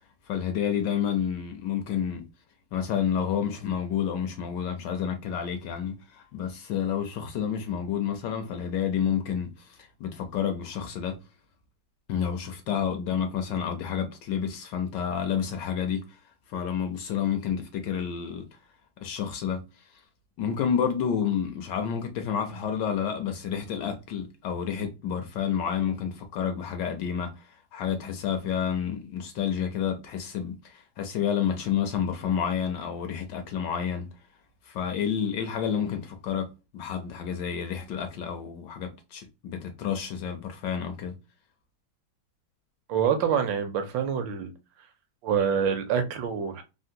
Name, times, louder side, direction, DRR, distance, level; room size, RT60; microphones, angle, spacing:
voice 1, 0.3-2.3 2.7-11.2 12.1-16.0 16.5-18.5 19.0-19.6 20.4-27.4 27.7-34.1 34.7-41.1, left 8 dB, 75° left, 1.1 m, -29 dB
voice 2, 42.9-44.5 45.2-46.6, right 7 dB, 75° right, 1.2 m, -26 dB
3.6 x 2.1 x 2.6 m
omnidirectional pair, 2.2 m